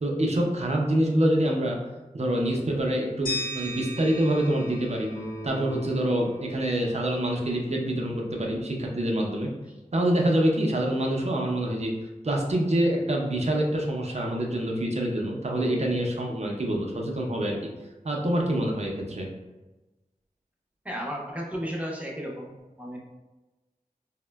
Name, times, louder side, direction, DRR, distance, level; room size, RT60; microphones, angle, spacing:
voice 1, 0.0-1.8 2.1-5.1 5.4-9.5 9.9-11.9 12.2-17.6 18.0-19.3, right 1 dB, 50° right, 0 dB, 0.6 m, -26 dB
sound 1, 3.3-6.2, equal, 80° left, 0.8 m, -37 dB
sound 2, 5.1-8.7, right 1 dB, 40° left, 0.7 m, -43 dB
voice 2, 20.8-22.5 22.8-23.0, equal, 10° right, -3 dB, 0.7 m, -33 dB
3.5 x 2.1 x 2.2 m, 1.1 s
wide cardioid pair, 50°, 15 cm